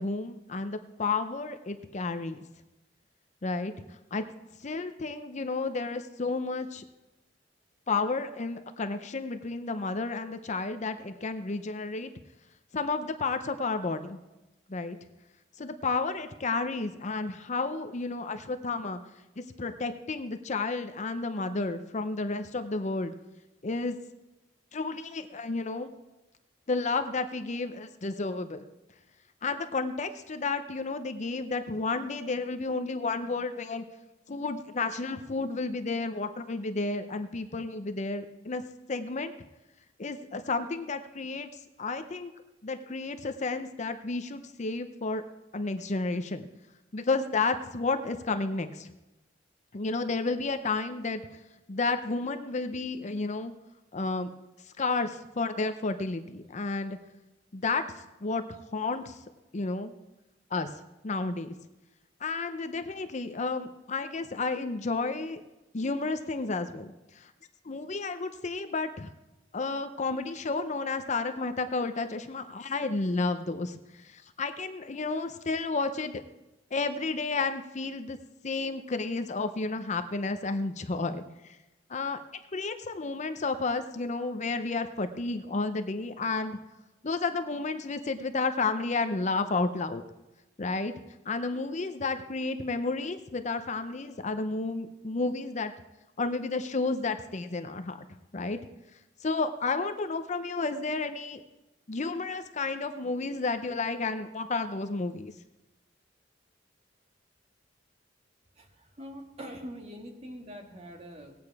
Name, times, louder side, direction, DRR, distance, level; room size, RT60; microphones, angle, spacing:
voice 1, 0.0-2.4 3.4-3.7 4.1-4.2 4.6-6.8 7.9-12.1 12.7-14.2 14.7-15.0 15.6-19.0 19.4-23.1 23.6-24.0 24.7-25.9 26.7-28.6 29.4-33.8 34.3-38.6 38.9-39.3 40.0-41.5 41.8-42.3 42.6-45.2 45.5-46.5 46.9-48.9 49.7-51.2 51.7-53.5 53.9-54.3 54.8-57.0 57.5-57.8 58.2-58.4 58.7-59.2 59.5-59.9 60.5-60.7 61.0-61.5 62.2-65.4 65.7-67.3 67.6-69.1 69.5-76.2 76.7-78.2 78.4-81.6 81.9-82.2 82.5-86.6 87.0-90.0 90.6-90.9 91.3-95.7 96.2-98.0 98.3-98.6 99.2-101.4 101.9-105.3, left 3 dB, 40° left, 9 dB, 0.6 m, -31 dB
voice 2, 108.6-111.3, equal, 35° right, 2 dB, 1.7 m, -44 dB
17.5 x 8.7 x 4.7 m, 1.0 s
head